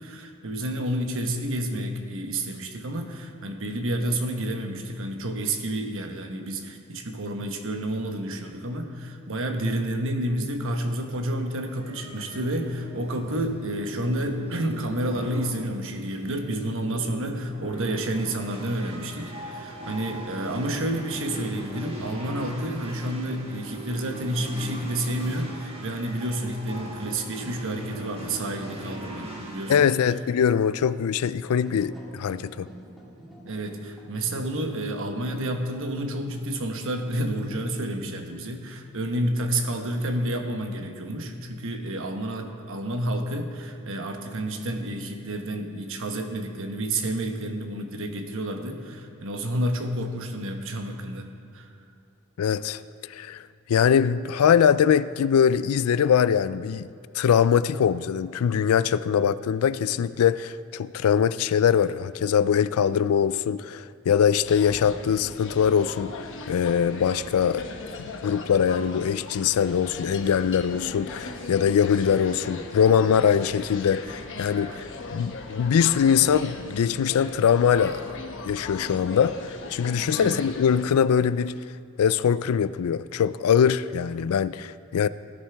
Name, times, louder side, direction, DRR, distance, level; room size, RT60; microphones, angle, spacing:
voice 1, 0.0-29.9 33.4-51.3 51.5-51.7 80.1-80.4, right 1 dB, 65° right, 1.0 m, -30 dB
sound 1, 11.7-29.7, right 1 dB, 25° right, 1.9 m, -39 dB
voice 2, 29.7-32.7 52.4-52.8 53.1-53.4 53.7-56.9 57.1-67.6 68.0-74.8 75.1-78.2 78.4-79.4 79.7-81.6 82.0-85.1, left 7 dB, 80° left, 0.3 m, -22 dB
sound 2, 31.6-37.9, right 1 dB, ahead, 2.0 m, -48 dB
sound 3, 64.4-80.8, left 3 dB, 60° left, 1.0 m, -38 dB
17.5 x 10.0 x 3.4 m
head